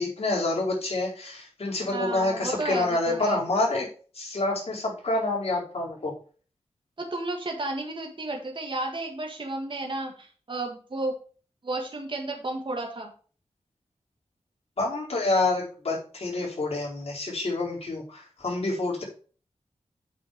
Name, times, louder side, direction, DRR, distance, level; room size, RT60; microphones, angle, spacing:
voice 1, 0.0-3.9 4.1-6.1 14.8-19.0, left 2 dB, 60° left, -4 dB, 4.5 m, -27 dB
voice 2, 1.8-3.4 7.0-11.1 11.6-13.1, right 2 dB, 45° right, 1 dB, 1.8 m, -32 dB
8.4 x 5.7 x 5.1 m, 0.40 s
wide cardioid pair, 100°, 11 cm